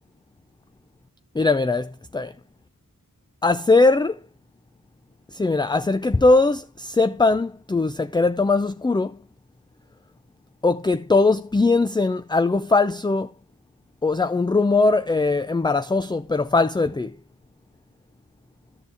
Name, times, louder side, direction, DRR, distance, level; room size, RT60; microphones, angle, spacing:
voice 1, 1.3-2.3 3.4-4.2 5.3-9.2 10.6-13.3 14.0-17.2, left 3 dB, 15° left, 0.4 m, -20 dB
10.5 x 6.8 x 3.4 m
wide cardioid pair, 50°, 35 cm